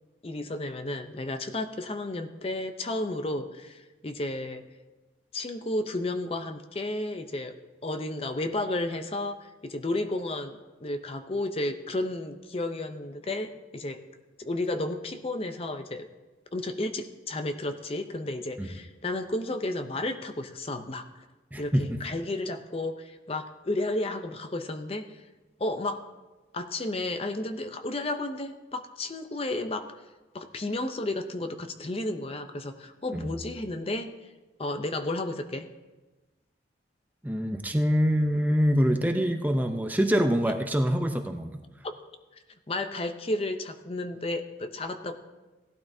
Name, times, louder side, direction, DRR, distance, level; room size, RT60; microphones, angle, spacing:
voice 1, 0.2-4.6 5.3-7.5 7.8-14.0 14.4-16.1 16.5-21.2 21.6-25.2 25.6-26.0 26.5-29.9 30.3-34.1 34.6-35.7 42.7-45.1, left 2 dB, 30° left, 8 dB, 0.6 m, -32 dB
voice 2, 21.5-22.0 33.1-33.3 37.2-41.6, equal, 10° right, 5 dB, 0.6 m, -25 dB
17.0 x 12.0 x 2.7 m, 1.2 s
head